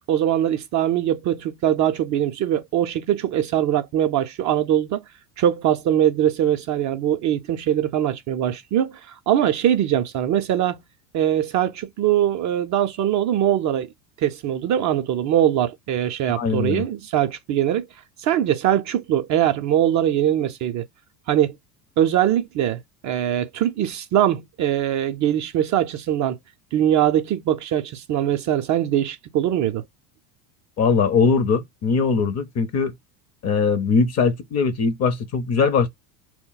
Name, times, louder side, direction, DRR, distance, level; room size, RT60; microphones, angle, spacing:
voice 1, 0.1-5.0 5.4-10.8 11.1-13.9 14.2-17.9 18.2-20.9 21.3-21.6 22.0-26.4 26.7-29.8, right 11 dB, 40° right, 0.4 m, -22 dB
voice 2, 16.3-16.9 30.8-32.9 33.4-35.9, left 5 dB, 35° left, 0.6 m, -21 dB
2.2 x 2.0 x 3.8 m
supercardioid pair, 105°, 48 cm